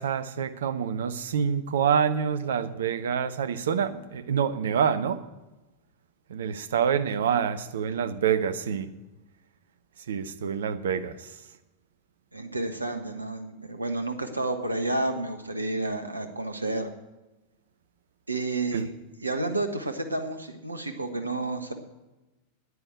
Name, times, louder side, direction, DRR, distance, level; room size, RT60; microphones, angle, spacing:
voice 1, 0.0-5.2 6.3-8.9 10.1-11.1 18.7-18.9, right 7 dB, 60° right, 12 dB, 0.8 m, -27 dB
voice 2, 12.3-16.9 18.3-18.9 19.2-21.7, right 2 dB, 80° right, 7 dB, 1.3 m, -30 dB
9.9 x 9.6 x 8.1 m, 1.1 s
figure-of-eight pair, 90°, 0 cm